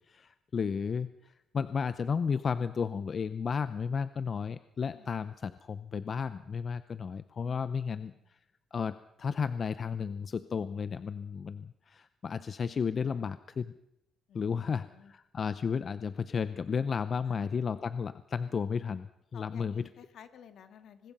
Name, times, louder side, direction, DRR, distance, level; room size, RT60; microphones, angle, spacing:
voice 1, 0.1-1.1 1.5-8.1 8.7-13.7 14.3-19.8, left 6 dB, 45° left, 13 dB, 0.7 m, -33 dB
voice 2, 7.6-8.2 14.3-15.1 17.3-17.5 19.3-21.1, left 8 dB, 70° left, 8 dB, 1.9 m, -54 dB
24.0 x 20.5 x 5.5 m, 0.85 s
cardioid pair, 90°, 0 cm